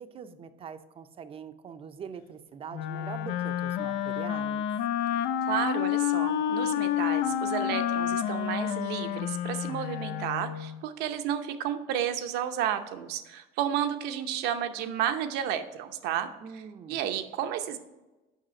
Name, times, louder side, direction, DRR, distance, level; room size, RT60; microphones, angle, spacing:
voice 1, 0.0-4.7 16.4-17.0, right 7 dB, 35° right, 11 dB, 0.5 m, -43 dB
Wind instrument woodwind instrument, 2.7-10.8, left 10 dB, 70° left, 0.4 m, -29 dB
voice 2, 5.5-17.8, right 10 dB, 75° right, 9 dB, 0.7 m, -32 dB
6.5 x 5.5 x 4.3 m, 1.1 s
cardioid pair, 110°, 17 cm